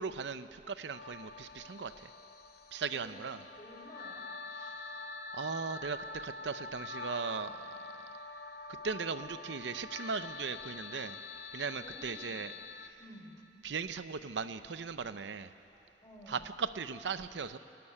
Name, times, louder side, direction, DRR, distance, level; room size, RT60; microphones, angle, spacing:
voice 1, 0.0-2.1 2.7-3.4 5.3-7.7 8.8-11.2 11.5-12.5 13.6-15.5 16.3-17.6, right 5 dB, 80° right, 12 dB, 0.6 m, -38 dB
sound 1, 0.9-12.9, left 3 dB, 65° left, 0.8 m, -45 dB
voice 2, 2.9-3.3 3.6-4.3 11.8-12.5 13.0-13.4 15.7-16.5, left 1 dB, 20° left, -1 dB, 3.7 m, -53 dB
24.0 x 13.0 x 9.9 m, 2.8 s
head